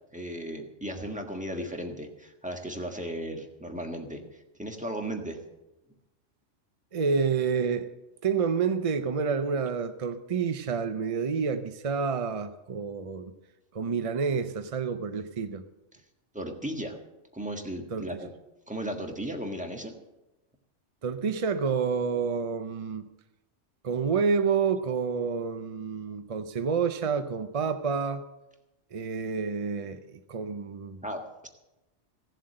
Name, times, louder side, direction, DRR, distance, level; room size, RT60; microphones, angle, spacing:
voice 1, 0.1-4.2 4.6-5.4 16.3-17.0 17.3-18.3 18.7-19.9 31.0-31.5, right 1 dB, 5° right, 3 dB, 1.5 m, -35 dB
voice 2, 6.9-7.9 8.2-13.3 13.7-15.6 17.9-18.2 21.0-23.0 23.8-28.2 28.9-31.0, right 5 dB, 45° right, 9 dB, 0.5 m, -29 dB
16.5 x 7.5 x 7.7 m, 1.0 s
omnidirectional pair, 1.3 m